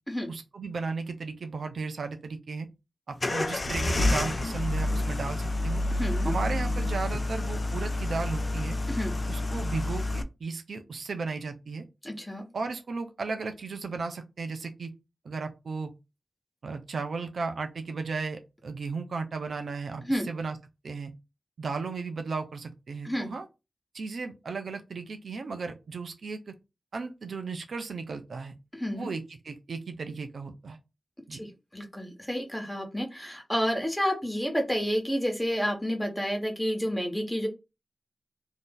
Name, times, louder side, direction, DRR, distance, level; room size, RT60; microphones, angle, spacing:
voice 1, 0.3-2.7 3.1-5.8 6.2-8.8 9.3-11.8 12.5-14.9 15.2-15.9 16.6-20.6 20.8-21.1 21.6-23.5 23.9-26.5 26.9-28.5 28.9-30.8 31.3-31.4, right 4 dB, 85° right, 6 dB, 0.5 m, -35 dB
sound 1, 3.2-10.2, left 2 dB, 45° left, 0.4 m, -29 dB
voice 2, 5.9-6.3 8.9-9.1 12.0-12.4 20.0-20.3 23.0-23.3 28.7-29.1 31.4-37.5, equal, 10° left, 3 dB, 1.3 m, -30 dB
2.7 x 2.5 x 3.8 m, 0.25 s
cardioid pair, 50°, 0 cm